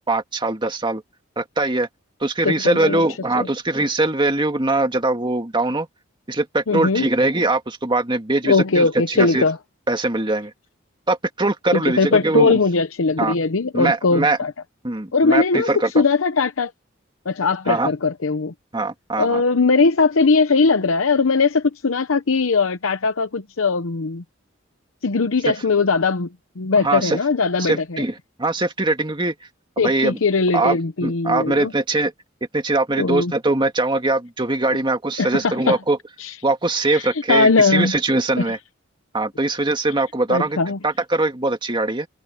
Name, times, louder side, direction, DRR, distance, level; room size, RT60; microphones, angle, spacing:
voice 1, 0.1-1.0 1.4-1.9 2.2-5.9 6.3-9.4 9.9-10.5 11.1-12.6 13.2-13.3 13.7-14.4 14.8-15.9 17.7-17.9 18.7-19.4 25.5-25.6 26.8-27.2 27.6-29.3 29.8-30.2 30.5-32.1 32.5-36.0 36.4-38.6 39.1-40.6 40.8-42.1, right 2 dB, 25° right, 2.1 m, -21 dB
voice 2, 2.4-3.0 3.3-3.5 6.7-7.1 8.4-9.6 11.7-14.5 15.1-15.7 15.9-16.7 17.3-18.5 19.2-24.2 25.0-26.3 26.6-28.0 29.8-31.7 33.0-33.3 35.2-35.8 36.2-36.3 36.9-37.9 38.4-38.5 40.3-40.8, left 4 dB, 80° left, 0.8 m, -19 dB
head